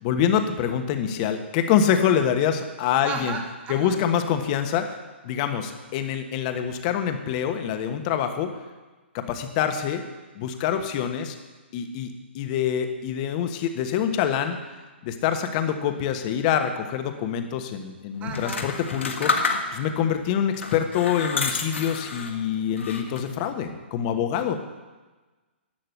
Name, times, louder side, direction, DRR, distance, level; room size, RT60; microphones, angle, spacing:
voice 1, 0.0-3.4 3.7-4.9 5.2-8.5 9.1-10.0 10.3-11.4 11.7-12.1 12.3-14.6 15.0-19.3 19.7-24.6, left 8 dB, 40° left, 7 dB, 1.3 m, -25 dB
voice 2, 3.0-3.9 18.2-18.7, right 6 dB, 20° right, 4 dB, 1.4 m, -34 dB
sound 1, 18.3-20.0 20.6-22.4 22.8-23.4, left 4 dB, 85° left, 1.6 m, -29 dB
11.5 x 6.6 x 8.0 m, 1.2 s
hypercardioid pair, 135°, 6 cm